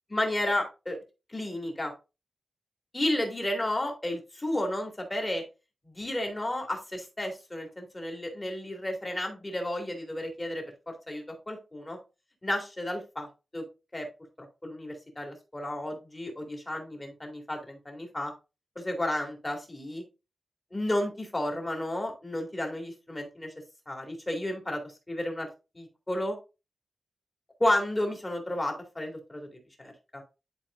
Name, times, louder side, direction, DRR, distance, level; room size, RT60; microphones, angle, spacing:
voice 1, 0.1-1.0 1.3-1.9 2.9-5.4 5.8-12.0 12.4-13.3 13.5-13.6 13.9-14.1 14.6-18.3 18.8-20.0 20.7-23.5 23.9-25.5 25.7-26.3 27.6-29.5 29.8-30.2, left 1 dB, 20° left, 2 dB, 2.3 m, -32 dB
10.5 x 4.5 x 2.5 m, 0.29 s
wide cardioid pair, 110°, 0 cm